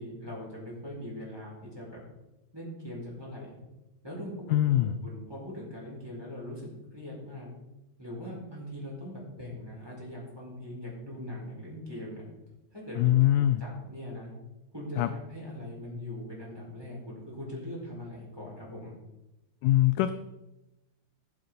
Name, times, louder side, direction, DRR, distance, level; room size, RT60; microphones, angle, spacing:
voice 1, 0.0-2.0 2.5-3.6 4.0-7.5 8.0-12.2 12.7-14.3 14.7-18.9, left 1 dB, 5° right, -5 dB, 4.3 m, -41 dB
voice 2, 4.5-4.9 13.0-13.6 15.0-15.1 19.6-20.1, left 13 dB, 80° left, 11 dB, 1.9 m, -22 dB
15.0 x 8.0 x 4.0 m, 0.98 s
omnidirectional pair, 4.0 m